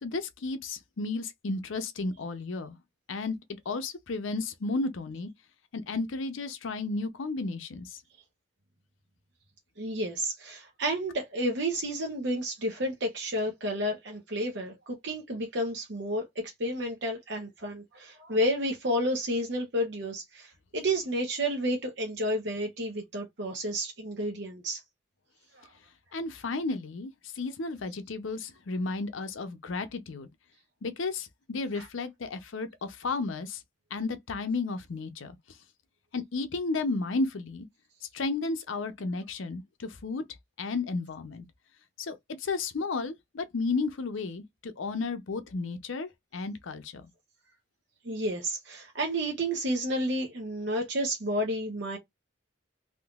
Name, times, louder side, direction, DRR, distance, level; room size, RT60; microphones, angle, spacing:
voice 1, 0.0-2.8 3.1-3.4 3.7-5.3 5.7-8.0 26.1-30.3 30.8-33.6 33.9-35.3 36.1-37.7 38.1-40.2 40.6-41.4 42.0-47.1, left 3 dB, 85° left, 0.6 m, -33 dB
voice 2, 9.8-24.8 25.5-25.7 31.7-31.9 48.0-52.0, equal, 65° right, 0.9 m, -31 dB
3.6 x 2.6 x 2.3 m
head